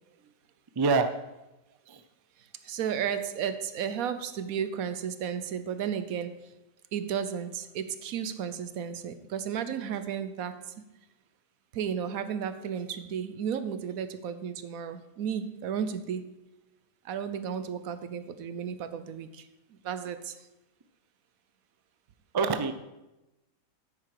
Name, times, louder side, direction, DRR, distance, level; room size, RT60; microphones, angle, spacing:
voice 1, 0.8-1.1 1.9-2.0 22.3-22.7, right 4 dB, 35° right, 9 dB, 0.3 m, -25 dB
voice 2, 2.6-6.5 6.9-10.7 11.7-16.3 17.0-19.5 19.8-20.4, right 8 dB, 90° right, 12 dB, 1.2 m, -33 dB
9.7 x 8.8 x 4.8 m, 0.99 s
omnidirectional pair, 1.4 m